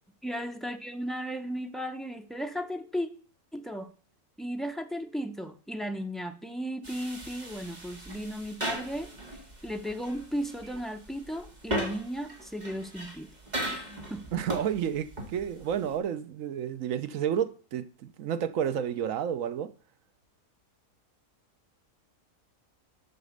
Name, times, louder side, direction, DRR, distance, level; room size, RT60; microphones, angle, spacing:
voice 1, 0.2-3.1 3.5-3.9 4.4-13.3 13.6-14.3, equal, ahead, 0.3 m, -35 dB
sound 1, 6.8-16.0, right 1 dB, 30° right, 2.1 m, -38 dB
voice 2, 14.3-19.7, right 9 dB, 65° right, 1.1 m, -31 dB
8.4 x 6.1 x 6.6 m
omnidirectional pair, 1.6 m